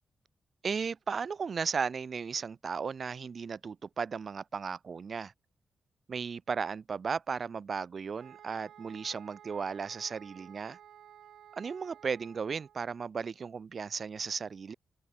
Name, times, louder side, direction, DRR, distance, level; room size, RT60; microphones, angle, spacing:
voice 1, 0.6-5.3 6.1-10.8 11.6-14.7, right 5 dB, 55° right, 0.5 m, -35 dB
sound 1, 8.1-12.8, right 10 dB, 90° right, 1.7 m, -54 dB
open air
cardioid pair, 75°, 0 cm